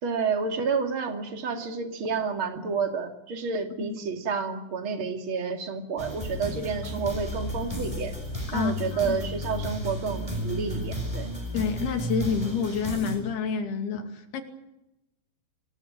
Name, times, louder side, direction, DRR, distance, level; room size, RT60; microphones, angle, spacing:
voice 1, 0.0-8.1 8.5-11.3, right 5 dB, 35° right, 5 dB, 2.8 m, -30 dB
sound 1, 6.0-13.2, equal, 5° right, 7.4 m, -33 dB
voice 2, 11.5-14.4, left 6 dB, 75° left, 5 dB, 4.5 m, -28 dB
26.5 x 19.0 x 9.0 m, 0.92 s
omnidirectional pair, 4.7 m